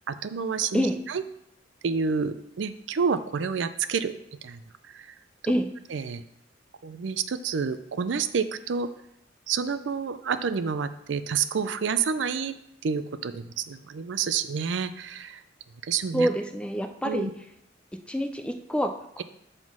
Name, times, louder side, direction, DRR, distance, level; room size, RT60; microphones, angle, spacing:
voice 1, 0.1-1.2 1.8-4.6 4.9-5.1 5.4-5.5 5.9-6.2 6.8-8.9 9.5-12.5 12.8-15.4 15.8-16.3 17.0-17.3, right 6 dB, 75° right, 12 dB, 0.5 m, -29 dB
voice 2, 16.1-17.3 18.1-19.2, equal, 5° left, 7 dB, 0.4 m, -27 dB
7.2 x 3.7 x 6.2 m, 0.76 s
head